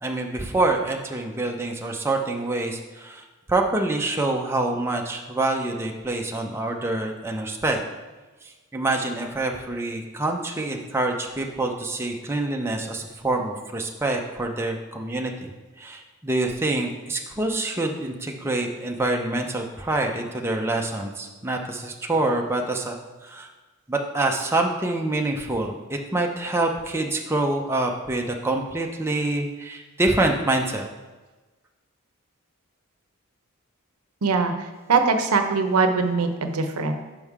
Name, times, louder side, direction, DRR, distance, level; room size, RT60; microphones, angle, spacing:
voice 1, 0.0-7.8 8.4-23.5 23.9-30.8, right 2 dB, 10° right, 1 dB, 0.5 m, -26 dB
voice 2, 34.2-36.9, right 4 dB, 90° right, 7 dB, 0.7 m, -22 dB
5.4 x 5.3 x 4.7 m, 1.2 s
head